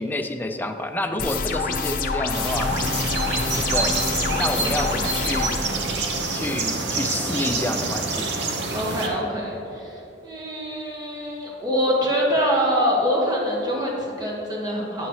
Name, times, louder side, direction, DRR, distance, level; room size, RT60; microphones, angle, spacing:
voice 1, 0.0-2.7 3.6-4.0 4.3-5.6 6.3-8.4, left 1 dB, 10° left, 5 dB, 0.5 m, -29 dB
sound 1, 1.2-5.6, left 4 dB, 50° left, 0.7 m, -26 dB
sound 2, 2.3-9.1, right 3 dB, 70° right, 0.9 m, -27 dB
voice 2, 3.8-4.6 8.7-15.1, equal, 25° right, -4 dB, 1.7 m, -25 dB
9.8 x 8.9 x 3.2 m, 2.8 s
head